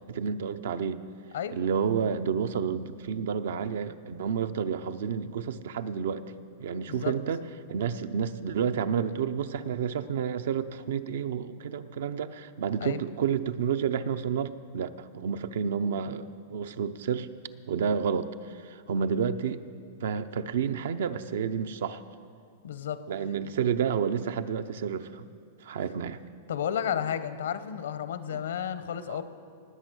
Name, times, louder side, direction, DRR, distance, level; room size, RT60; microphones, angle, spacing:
voice 1, 0.1-1.0 1.5-6.3 6.6-7.4 7.7-17.3 17.7-19.6 20.0-22.0 23.1-25.2 25.6-26.2 28.3-28.4 29.1-29.2, right 7 dB, 75° right, 12 dB, 0.6 m, -30 dB
voice 2, 22.6-23.0 26.5-29.2, left 9 dB, 85° left, 12 dB, 0.9 m, -32 dB
19.0 x 8.2 x 6.3 m, 2.3 s
supercardioid pair, 145°, 0 cm